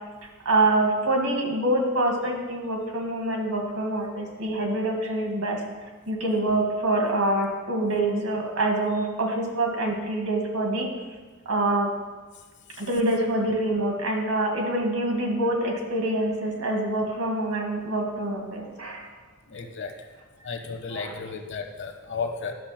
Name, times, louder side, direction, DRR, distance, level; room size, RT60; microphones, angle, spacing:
voice 1, 0.5-5.6 6.1-10.9 11.5-11.9 12.8-19.1 20.9-21.1, right 1 dB, 80° right, 2 dB, 2.0 m, -25 dB
voice 2, 19.5-19.9 20.4-22.5, left 5 dB, 55° left, 5 dB, 1.0 m, -33 dB
11.0 x 6.2 x 5.8 m, 1.3 s
head